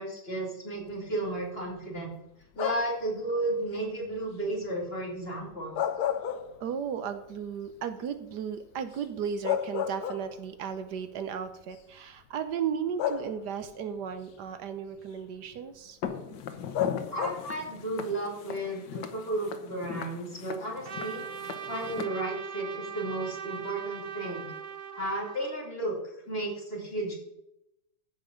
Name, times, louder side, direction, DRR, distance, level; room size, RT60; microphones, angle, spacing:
voice 1, 0.0-2.1 2.5-5.9 17.1-21.2 21.7-24.5 24.9-27.1, right 2 dB, 35° left, -2 dB, 2.8 m, -33 dB
sound 1, 2.5-3.1 5.5-6.9 7.3-7.4 9.0-9.1 9.4-10.6 11.6-11.7 13.0-13.7 16.7-17.6, left 9 dB, 70° left, 1.2 m, -31 dB
voice 2, 6.6-16.0, right 7 dB, 75° right, 10 dB, 1.4 m, -35 dB
Walk footsteps, 16.0-22.0, left 7 dB, 90° left, 1.6 m, -40 dB
Trumpet, 20.8-25.5, right 7 dB, 60° right, 0.5 m, -40 dB
14.5 x 5.2 x 5.2 m, 0.85 s
omnidirectional pair, 1.8 m